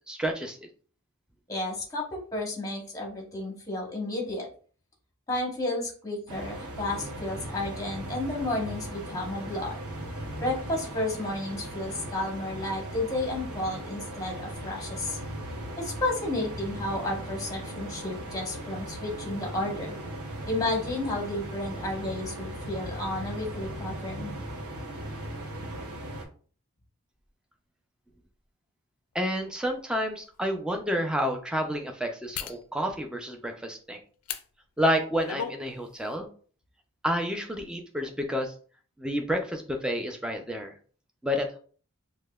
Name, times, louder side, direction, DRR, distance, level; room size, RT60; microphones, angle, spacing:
voice 1, 0.1-0.6 29.1-34.0 34.8-36.3 37.0-38.5 39.0-40.7 41.2-41.6, equal, 5° right, 3 dB, 0.4 m, -29 dB
voice 2, 1.5-4.5 5.3-9.8 10.4-15.2 15.8-19.9 20.5-24.3, left 2 dB, 15° left, -1 dB, 0.9 m, -32 dB
sound 1, 6.3-26.3, right 1 dB, 90° right, 0.8 m, -38 dB
sound 2, 29.5-29.6 30.2-30.4 32.3-32.6 34.2-34.4 35.0-35.6 36.0-36.1, left 8 dB, 80° left, 0.4 m, -35 dB
5.2 x 2.1 x 2.3 m, 0.42 s
head